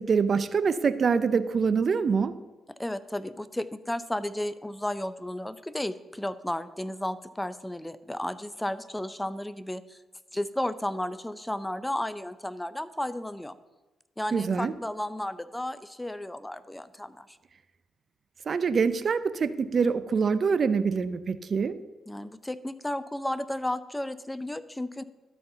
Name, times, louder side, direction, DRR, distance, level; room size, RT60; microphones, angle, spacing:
voice 1, 0.0-2.4 14.3-14.7 18.5-21.8, right 5 dB, 50° right, 13 dB, 0.6 m, -25 dB
voice 2, 2.8-10.0 10.3-13.5 14.2-17.4 22.1-25.0, left 1 dB, 10° left, 14 dB, 0.6 m, -33 dB
12.5 x 4.4 x 6.8 m, 1.1 s
supercardioid pair, 55°, 0 cm